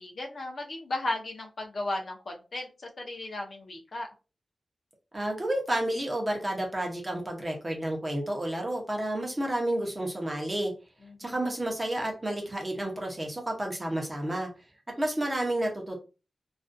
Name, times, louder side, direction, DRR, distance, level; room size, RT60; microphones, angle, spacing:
voice 1, 0.0-4.1 11.0-11.3, left 2 dB, 55° left, 1 dB, 0.5 m, -35 dB
voice 2, 5.1-10.7 11.2-14.5 15.0-16.0, right 1 dB, 20° right, 0 dB, 0.6 m, -30 dB
2.4 x 2.2 x 2.4 m, 0.32 s
wide cardioid pair, 160°, 0 cm